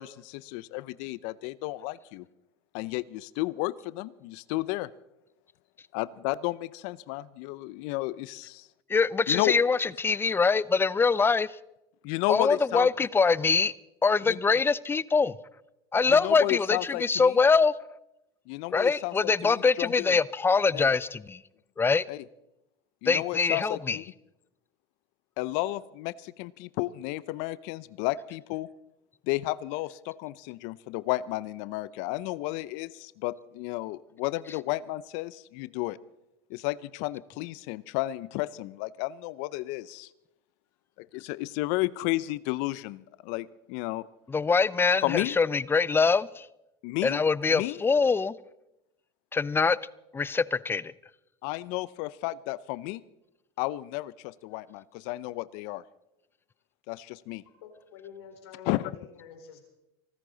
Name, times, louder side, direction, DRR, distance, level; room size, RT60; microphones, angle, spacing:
voice 1, 0.0-2.3 2.7-4.9 5.9-8.7 9.3-9.5 12.0-12.9 14.3-14.4 16.1-17.3 18.5-20.2 20.7-20.9 22.1-22.2 23.0-24.0 25.4-28.7 29.3-36.0 36.5-40.1 41.0-44.1 45.0-45.4 46.8-47.2 47.5-47.8 51.4-53.0 53.6-55.8 56.9-57.4 58.6-58.9, left 18 dB, 65° left, 19 dB, 0.6 m, -32 dB
voice 2, 8.9-11.5 12.3-13.7 14.0-15.4 15.9-17.7 18.7-21.4 21.8-22.1 23.1-24.0 44.3-46.5 47.0-48.3 49.3-49.8 50.1-50.9, left 4 dB, 15° left, 21 dB, 0.5 m, -24 dB
voice 3, 57.6-59.6, left 7 dB, 85° left, 3 dB, 4.3 m, -48 dB
24.5 x 14.0 x 4.0 m, 0.89 s
supercardioid pair, 95°, 13 cm